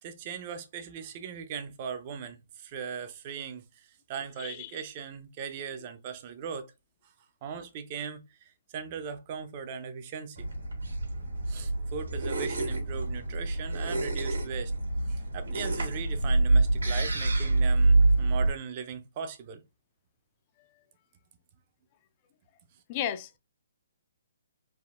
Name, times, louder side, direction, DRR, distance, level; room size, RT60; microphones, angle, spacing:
voice 1, 0.0-3.6 4.1-6.7 7.4-10.5 11.5-14.7 15.1-19.6, right 7 dB, 40° right, 0.5 m, -39 dB
voice 2, 4.4-4.8 22.9-23.4, left 10 dB, 35° left, 0.3 m, -34 dB
sound 1, 10.4-18.5, right 2 dB, 85° right, 1.4 m, -26 dB
3.3 x 2.0 x 2.5 m
hypercardioid pair, 140°, 0 cm